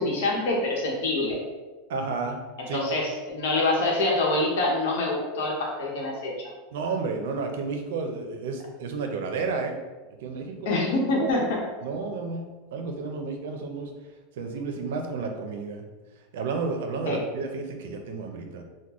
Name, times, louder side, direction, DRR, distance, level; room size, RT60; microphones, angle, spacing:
voice 1, 0.0-1.4 2.7-6.3 10.6-11.4 17.0-17.2, left 2 dB, 75° left, -2 dB, 1.0 m, -25 dB
voice 2, 1.9-2.4 2.7-2.9 6.7-9.8 10.2-10.7 11.2-11.3 11.8-13.9 14.4-15.9 16.3-18.6, right 4 dB, 80° right, 4 dB, 0.5 m, -31 dB
3.6 x 2.2 x 3.0 m, 1.2 s
supercardioid pair, 145°, 0 cm